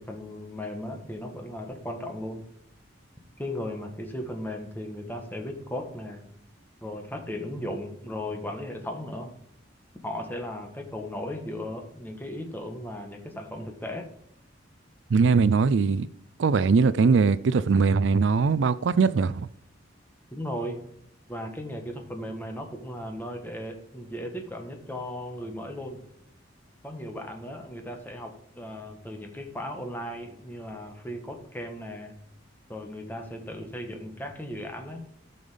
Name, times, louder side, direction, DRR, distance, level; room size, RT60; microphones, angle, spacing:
voice 1, 0.0-2.4 3.4-6.2 6.8-9.3 10.0-14.1 20.3-20.8 21.3-26.0 26.8-32.1 32.7-35.0, left 1 dB, 10° left, 1.5 m, -36 dB
voice 2, 15.1-16.1 16.4-19.5, right 5 dB, 70° right, 0.4 m, -21 dB
13.5 x 5.4 x 5.1 m
head